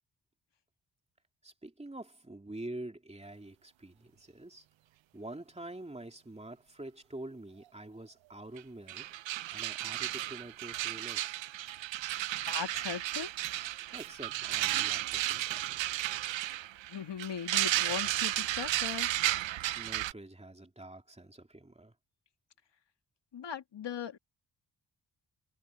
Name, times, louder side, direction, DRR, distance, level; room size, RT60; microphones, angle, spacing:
voice 1, 1.4-4.6 5.1-9.1 9.5-11.3 13.9-15.9 19.7-21.9, right 1 dB, 15° right, 2.7 m, -46 dB
sound 1, 8.6-8.7 8.9-20.1, right 14 dB, 80° right, 0.6 m, -33 dB
voice 2, 12.5-13.3 16.9-19.1 23.3-24.2, left 8 dB, 65° left, 2.2 m, -39 dB
cardioid pair, 65°, 45 cm